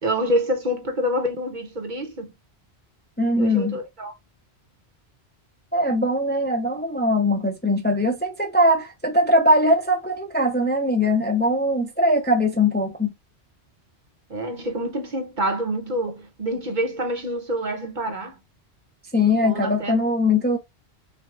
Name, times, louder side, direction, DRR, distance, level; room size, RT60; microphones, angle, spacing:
voice 1, 0.0-2.3 3.4-4.2 14.3-18.3 19.4-19.9, equal, 50° right, 1.0 m, -27 dB
voice 2, 3.2-3.8 5.7-13.1 19.1-20.6, left 1 dB, 10° left, 0.5 m, -21 dB
6.0 x 2.3 x 2.3 m
omnidirectional pair, 1.1 m